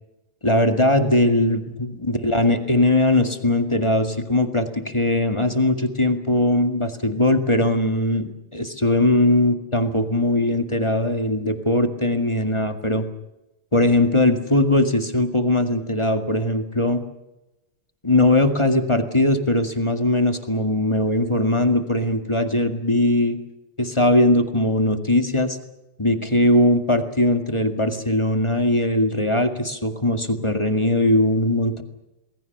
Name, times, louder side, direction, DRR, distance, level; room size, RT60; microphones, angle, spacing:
voice 1, 0.4-13.1 13.7-17.0 18.0-23.4 23.8-25.6 26.0-31.8, left 1 dB, 15° left, 6 dB, 1.8 m, -20 dB
28.0 x 21.0 x 6.7 m, 0.96 s
omnidirectional pair, 2.4 m